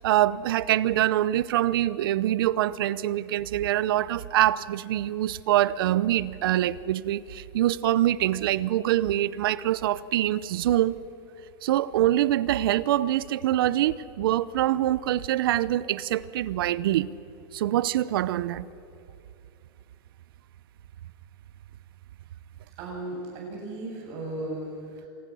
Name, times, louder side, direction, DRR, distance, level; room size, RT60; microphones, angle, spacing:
voice 1, 0.0-11.0 11.6-17.1 17.5-18.7, right 13 dB, 75° right, 19 dB, 0.7 m, -24 dB
voice 2, 22.8-25.1, right 2 dB, 45° right, -1 dB, 7.6 m, -36 dB
26.5 x 19.5 x 6.3 m, 2.7 s
supercardioid pair, 160°, 12 cm